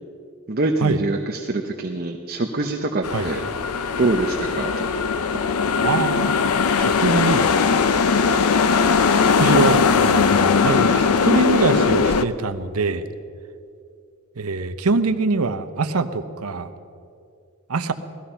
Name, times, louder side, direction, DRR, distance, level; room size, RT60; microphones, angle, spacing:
voice 1, 0.5-3.4 4.0-4.9, right 2 dB, 40° right, 3 dB, 0.8 m, -24 dB
sound 1, 3.0-12.2, left 5 dB, 80° left, 0.6 m, -19 dB
voice 2, 5.8-6.3 6.8-7.5 9.2-13.1 14.4-16.7 17.7-17.9, right 3 dB, 80° right, 11 dB, 0.8 m, -23 dB
18.0 x 14.0 x 5.7 m, 2.5 s
head